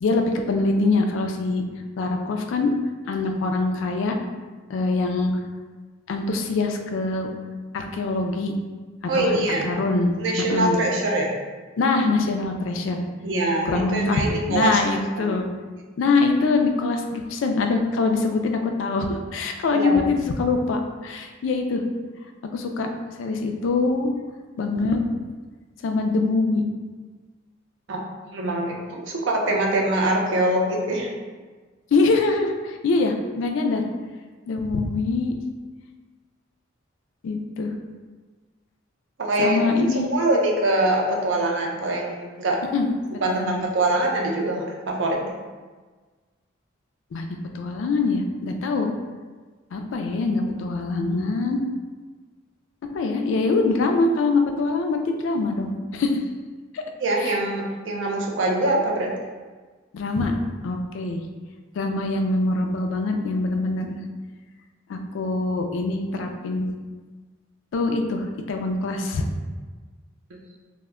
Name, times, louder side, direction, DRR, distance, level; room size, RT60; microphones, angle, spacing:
voice 1, 0.0-1.6 2.0-2.7 3.1-4.2 4.7-5.3 6.1-7.3 7.7-8.5 9.2-9.4 9.6-10.8 11.8-13.1 13.6-15.5 16.0-21.8 22.4-22.9 23.2-24.1 24.6-25.0 25.8-26.6 31.9-33.8 34.5-35.3 37.2-37.7 39.4-40.1 42.7-42.9 43.3-43.6 47.1-48.9 49.7-51.6 52.8-56.2 56.7-56.8 57.2-57.3 59.9-60.3 60.6-61.2 61.7-64.0 64.9-66.7 67.7-69.3, left 3 dB, 70° left, 4 dB, 0.3 m, -24 dB
voice 2, 9.1-9.7 10.2-11.3 13.2-15.4 19.7-20.1 27.9-28.0 28.3-31.1 39.2-42.6 43.2-45.3 57.0-59.1, right 1 dB, 65° right, 0 dB, 0.5 m, -24 dB
2.1 x 2.1 x 3.5 m, 1.4 s
head